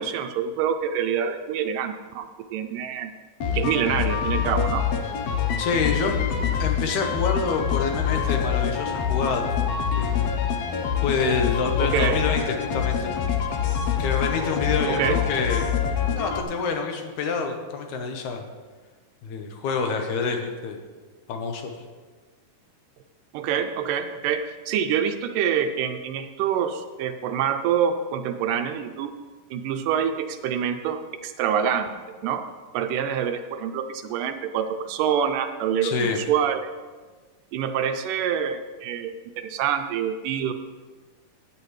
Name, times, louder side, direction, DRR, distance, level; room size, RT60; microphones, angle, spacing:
voice 1, 0.0-2.3 2.5-3.1 3.5-4.8 11.8-12.2 14.9-15.2 23.3-29.1 29.5-31.9 32.2-32.4 32.7-36.7 37.5-40.5, right 8 dB, 80° right, 7 dB, 2.1 m, -26 dB
sound 1, 3.4-16.4, left 8 dB, 85° left, 1.4 m, -25 dB
voice 2, 5.6-6.2 6.6-9.5 10.0-10.2 11.0-13.1 14.0-15.7 16.2-18.4 19.2-20.8 21.3-21.6 35.8-36.2, left 5 dB, 70° left, 4 dB, 2.2 m, -27 dB
15.0 x 8.8 x 3.2 m, 1.4 s
omnidirectional pair, 4.0 m